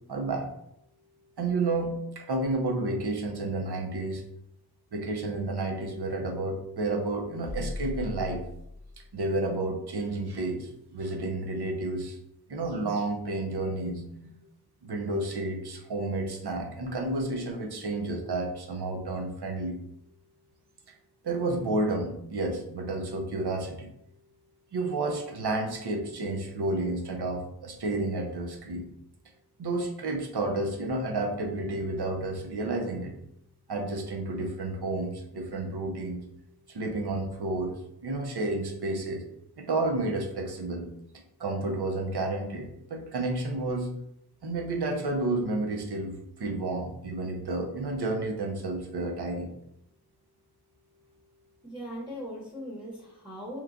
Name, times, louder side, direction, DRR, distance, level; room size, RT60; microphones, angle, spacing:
voice 1, 0.1-0.5 1.4-4.2 4.9-8.4 9.1-12.2 12.5-14.3 14.8-19.8 21.2-23.9 24.7-28.9 29.6-33.1 33.7-36.2 36.7-37.7 38.0-39.2 39.6-40.9 41.4-43.9 44.4-49.5, right 2 dB, 85° right, 1 dB, 0.7 m, -31 dB
sound 1, 7.5-9.3, left 2 dB, 25° left, 0.9 m, -38 dB
voice 2, 51.6-53.6, equal, 10° right, -4 dB, 0.9 m, -39 dB
3.0 x 2.3 x 3.7 m, 0.78 s
wide cardioid pair, 65°, 38 cm